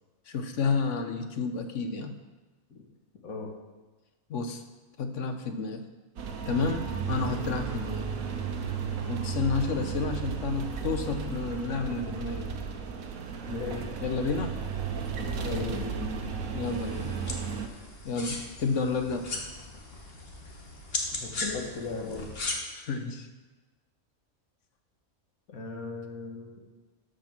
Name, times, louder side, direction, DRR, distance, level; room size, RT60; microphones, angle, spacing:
voice 1, 0.3-2.2 4.3-4.6 5.0-5.9 6.5-8.1 9.1-12.6 14.0-14.6 16.5-17.1 18.0-19.3 22.7-23.3, left 4 dB, 65° left, 7 dB, 1.1 m, -31 dB
sound 1, 6.2-17.7, right 6 dB, 80° right, 1.3 m, -34 dB
voice 2, 13.5-13.9 15.4-16.1 21.1-22.3 25.5-26.6, left 3 dB, 85° left, 0 dB, 1.9 m, -36 dB
sound 2, 16.6-22.5, left 3 dB, 45° left, 1.5 m, -37 dB
13.0 x 5.2 x 5.9 m, 1.2 s
omnidirectional pair, 1.4 m